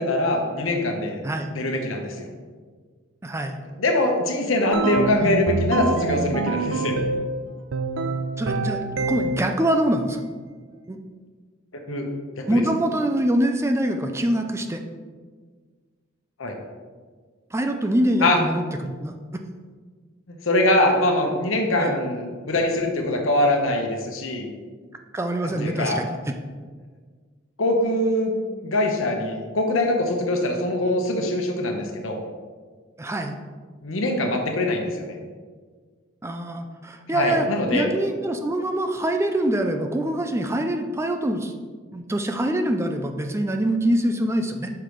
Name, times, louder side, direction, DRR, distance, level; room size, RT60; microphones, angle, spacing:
voice 1, 0.0-1.2 1.5-2.3 3.8-7.0 11.9-12.1 12.4-12.6 16.4-16.6 18.2-18.4 20.3-24.5 25.4-26.0 27.6-28.4 28.6-32.2 33.8-35.2 37.1-37.9, left 1 dB, 75° left, 2 dB, 1.1 m, -23 dB
voice 2, 3.2-3.6 5.2-5.9 8.4-10.2 10.9-11.0 12.5-14.8 17.5-19.1 21.8-21.9 25.1-26.3 33.0-33.4 36.2-37.5 37.7-41.5 41.9-44.7, right 1 dB, 15° right, 5 dB, 0.4 m, -24 dB
sound 1, 4.7-7.3 7.7-9.6, right 3 dB, 65° right, 0.5 m, -26 dB
5.8 x 4.8 x 5.2 m, 1.5 s
head